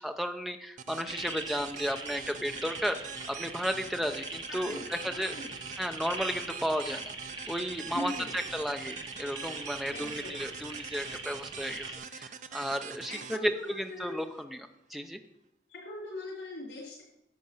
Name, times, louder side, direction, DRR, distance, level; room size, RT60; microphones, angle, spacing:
voice 1, 0.0-3.0 3.3-5.3 5.8-7.0 7.5-15.2, equal, ahead, 6 dB, 0.7 m, -34 dB
sound 1, 0.8-14.4, right 6 dB, 45° right, 0.5 m, -44 dB
sound 2, 1.1-11.9, right 3 dB, 25° right, 1.1 m, -42 dB
voice 2, 4.5-5.6 7.9-8.3 9.9-10.4 13.1-14.2 15.7-17.0, left 1 dB, 85° left, -9 dB, 4.4 m, -41 dB
10.5 x 7.8 x 5.5 m, 0.83 s
head